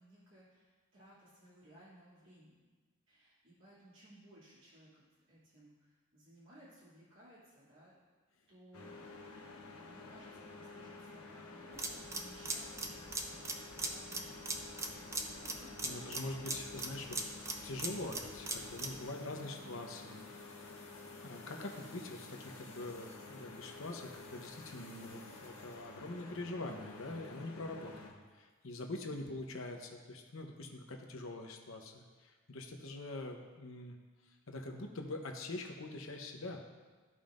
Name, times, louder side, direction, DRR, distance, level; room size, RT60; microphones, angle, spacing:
voice 1, 0.0-2.6 3.1-5.0 5.3-8.0 8.5-14.6 15.0-16.7 18.9-20.0, right 1 dB, 65° right, -11 dB, 2.6 m, -60 dB
sound 1, 8.7-28.1, left 3 dB, 85° left, 1.1 m, -51 dB
sound 2, 11.7-19.0, right 3 dB, 15° right, 0.4 m, -40 dB
voice 2, 15.8-17.1 17.6-20.2 21.2-34.0 34.5-36.6, left 2 dB, 65° left, 3 dB, 0.9 m, -44 dB
sound 3, 16.5-27.5 27.9-28.5 28.8-28.9, left 3 dB, 15° left, 1.2 m, -61 dB
14.0 x 5.4 x 2.6 m, 1.4 s
head